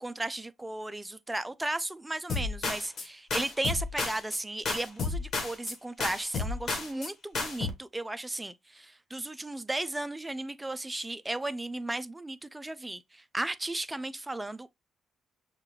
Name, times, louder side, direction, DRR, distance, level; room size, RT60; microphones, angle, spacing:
voice 1, 0.0-14.7, right 2 dB, 10° right, 0.4 m, -35 dB
sound 1, 2.3-3.1 3.3-4.4 4.7-5.7 6.0-7.1 7.3-7.7, left 4 dB, 55° left, 1.2 m, -32 dB
6.5 x 2.3 x 3.1 m
cardioid pair, 90°, 0 cm